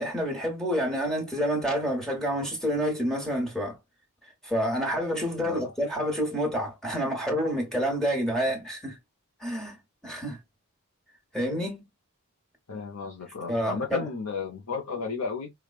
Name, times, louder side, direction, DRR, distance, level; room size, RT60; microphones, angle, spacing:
voice 1, 0.0-3.8 4.4-9.0 9.4-9.8 10.0-10.4 11.3-11.8 13.5-14.0, equal, ahead, 1.3 m, -28 dB
voice 2, 5.4-5.7 12.7-15.5, left 5 dB, 80° left, 0.8 m, -33 dB
5.0 x 2.3 x 2.3 m
head